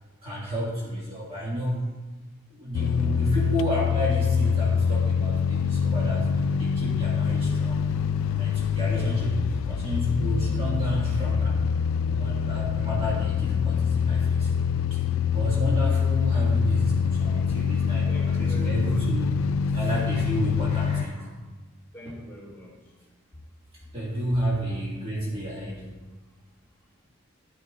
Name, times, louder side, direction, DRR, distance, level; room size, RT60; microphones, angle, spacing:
voice 1, 0.2-1.8 2.5-7.9 8.3-11.8 12.1-14.5 14.9-15.0 15.3-19.3 19.7-21.3 22.0-22.1 23.9-25.9, equal, 30° right, -6 dB, 1.8 m, -31 dB
sound 1, 2.7-21.1, left 6 dB, 85° left, 0.3 m, -25 dB
voice 2, 18.1-19.0 21.9-22.7, right 1 dB, 10° left, -6 dB, 3.4 m, -42 dB
13.5 x 9.6 x 2.4 m, 1.3 s
head